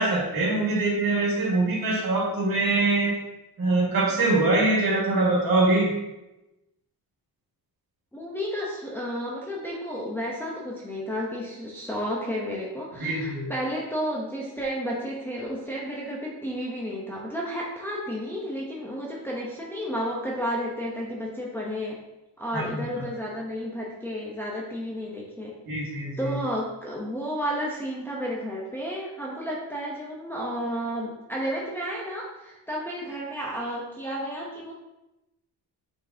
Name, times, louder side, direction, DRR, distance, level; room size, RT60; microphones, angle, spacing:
voice 1, 0.0-3.2 3.6-6.0 13.0-13.5 22.5-23.1 25.7-26.4, right 2 dB, 55° right, -3 dB, 2.0 m, -23 dB
voice 2, 8.1-22.0 22.4-25.5 26.2-34.7, equal, 5° left, -4 dB, 0.9 m, -32 dB
8.2 x 4.6 x 2.8 m, 0.96 s
wide cardioid pair, 170°, 42 cm